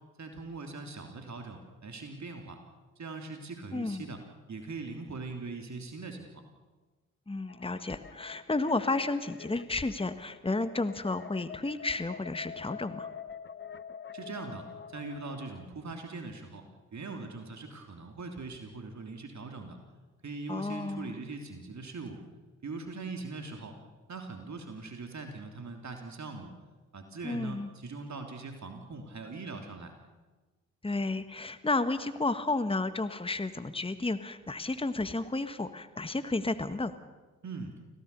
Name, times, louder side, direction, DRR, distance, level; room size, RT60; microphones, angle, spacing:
voice 1, 0.2-2.6 3.0-4.2 4.5-6.3 14.1-16.6 16.9-19.8 20.2-22.2 22.6-23.8 24.1-26.5 26.9-29.9 37.4-37.7, right 3 dB, 45° right, 4 dB, 3.2 m, -41 dB
voice 2, 3.7-4.1 7.3-13.1 20.5-21.1 27.2-27.7 30.8-36.9, left 2 dB, 15° left, 10 dB, 1.5 m, -32 dB
sound 1, 7.5-15.7, left 7 dB, 30° left, 0.9 m, -47 dB
26.5 x 17.0 x 6.9 m, 1.3 s
hypercardioid pair, 45°, 40 cm